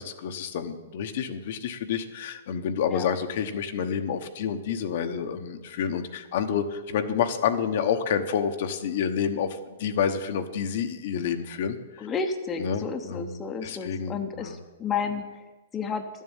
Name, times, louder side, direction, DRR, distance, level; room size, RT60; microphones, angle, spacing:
voice 1, 0.0-12.1 12.6-14.5, left 7 dB, 55° left, 7 dB, 1.1 m, -29 dB
voice 2, 12.0-16.1, left 5 dB, 15° left, 4 dB, 0.9 m, -32 dB
11.5 x 7.4 x 9.0 m, 1.2 s
hypercardioid pair, 145°, 0 cm